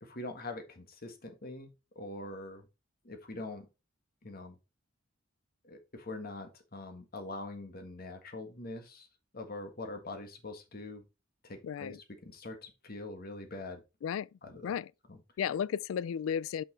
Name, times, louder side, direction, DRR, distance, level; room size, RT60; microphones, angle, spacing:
voice 1, 0.0-2.6 3.0-3.7 4.2-4.6 5.6-9.1 9.3-11.0 11.4-12.0 12.2-13.8 14.4-14.7 15.1-15.2, left 2 dB, 50° left, 1.6 m, -43 dB
voice 2, 11.6-12.0 14.0-14.3 14.6-14.9 15.4-16.6, left 8 dB, 80° left, 0.3 m, -33 dB
5.7 x 5.6 x 3.9 m
head